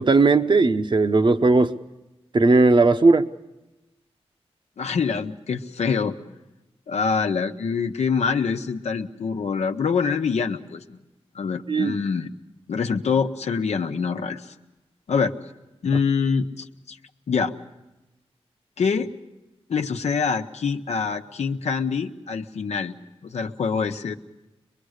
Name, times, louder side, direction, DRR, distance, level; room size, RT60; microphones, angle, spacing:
voice 1, 0.0-1.7 2.3-3.3 11.7-11.9, right 3 dB, 45° right, 8 dB, 0.9 m, -17 dB
voice 2, 4.8-6.4 6.9-11.0 11.3-12.3 12.7-14.5 15.1-15.3 15.8-17.0 17.3-17.5 18.8-19.1 19.7-22.9 23.2-24.1, left 5 dB, 90° left, 6 dB, 0.9 m, -25 dB
23.5 x 22.0 x 6.5 m, 1.0 s
wide cardioid pair, 80°, 11 cm